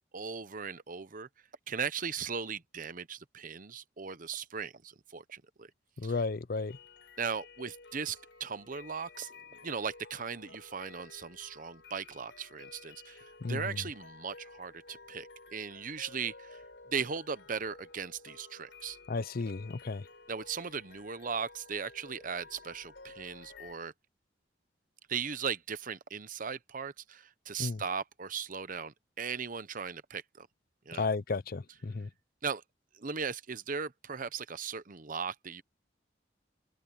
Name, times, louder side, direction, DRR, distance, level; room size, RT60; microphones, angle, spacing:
voice 1, 0.1-1.3 1.7-5.7 6.0-6.2 7.2-16.6 16.9-19.0 20.3-23.9 25.1-30.5 30.9-31.1 32.4-32.6 32.9-35.6, right 6 dB, 45° right, 0.9 m, -38 dB
voice 2, 6.0-6.8 13.4-13.6 19.1-20.0 27.6-27.8 31.0-32.1, left 4 dB, 55° left, 0.6 m, -33 dB
sound 1, 6.7-23.7, left 3 dB, 70° left, 4.4 m, -53 dB
head